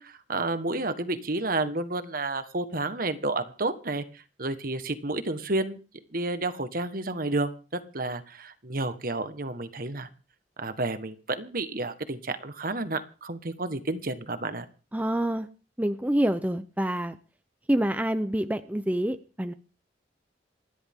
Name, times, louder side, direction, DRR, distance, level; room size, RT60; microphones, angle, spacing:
voice 1, 0.0-5.8 6.1-10.1 10.6-14.6, right 2 dB, 50° right, 10 dB, 1.5 m, -31 dB
voice 2, 14.9-15.5 15.8-17.2 17.7-19.5, right 1 dB, 10° right, 9 dB, 0.7 m, -27 dB
28.0 x 11.0 x 3.8 m, 0.35 s
head